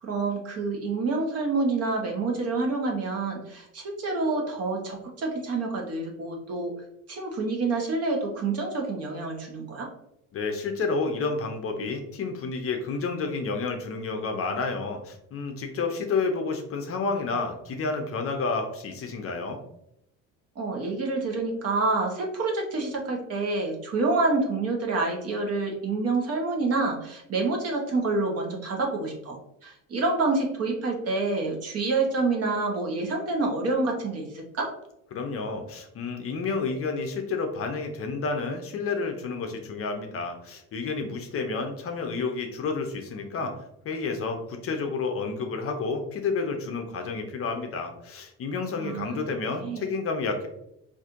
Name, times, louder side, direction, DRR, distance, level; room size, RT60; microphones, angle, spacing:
voice 1, 0.0-6.7 7.1-9.9 20.6-29.4 29.6-34.7 48.8-49.2 49.6-49.8, right 3 dB, 40° right, 1 dB, 0.9 m, -27 dB
voice 2, 10.3-19.6 35.1-43.5 43.8-50.5, left 4 dB, 40° left, 4 dB, 0.6 m, -30 dB
4.1 x 2.6 x 2.5 m, 0.81 s
cardioid pair, 110°, 36 cm